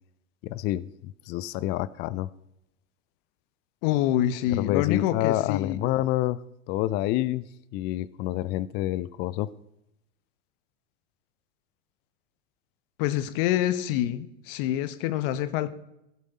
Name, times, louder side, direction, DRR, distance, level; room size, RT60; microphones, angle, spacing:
voice 1, 0.4-2.3 4.5-6.4 6.7-7.4 7.7-9.5, left 14 dB, 30° left, 0.4 m, -28 dB
voice 2, 3.8-5.8 13.0-15.7, left 12 dB, 50° left, 1.0 m, -26 dB
16.0 x 7.6 x 4.1 m
hypercardioid pair, 95°, 36 cm